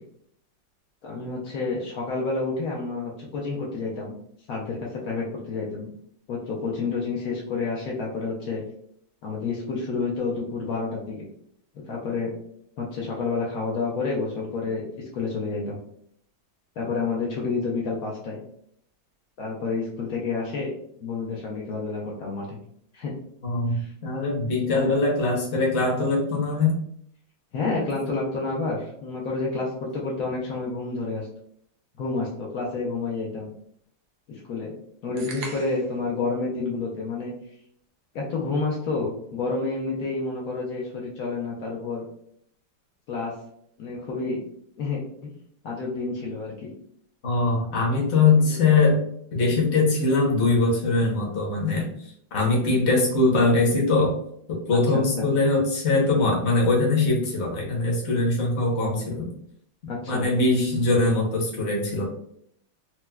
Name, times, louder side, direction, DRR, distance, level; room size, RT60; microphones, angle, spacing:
voice 1, 1.0-4.2 4.5-5.9 6.3-8.6 9.2-11.3 11.7-12.3 12.8-15.8 16.8-18.4 19.4-20.7 21.0-22.6 22.9-23.1 23.7-23.9 24.6-24.9 27.5-31.3 32.0-33.5 34.3-34.7 35.0-37.3 38.1-42.1 43.1-43.4 43.8-44.4 44.8-45.3 45.6-46.7 54.9-55.3 59.9-60.3, left 3 dB, 85° left, -3 dB, 0.7 m, -29 dB
voice 2, 23.4-26.7 47.2-49.0 49.3-51.9 52.3-54.1 54.5-59.3 60.1-62.0, left 3 dB, 55° left, -2 dB, 0.8 m, -22 dB
sound 1, 35.2-36.0, right 4 dB, 70° right, 0.9 m, -39 dB
4.5 x 2.0 x 2.2 m, 0.68 s
omnidirectional pair, 2.3 m